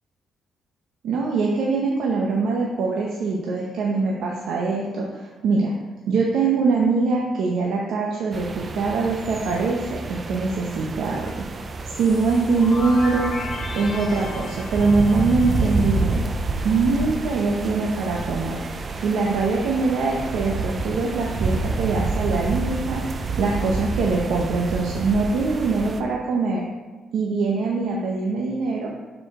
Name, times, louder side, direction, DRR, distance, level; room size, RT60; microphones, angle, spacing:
voice 1, 1.0-5.7 6.1-13.4 13.7-16.2 16.6-18.6 19.0-26.6 27.1-28.9, right 3 dB, 75° right, -2 dB, 0.8 m, -23 dB
sound 1, 8.3-26.0, right 3 dB, 40° right, 0.5 m, -29 dB
sound 2, 11.9-16.7, left 2 dB, 50° left, 1.2 m, -36 dB
6.5 x 4.9 x 3.7 m, 1.3 s
cardioid pair, 90°, 0 cm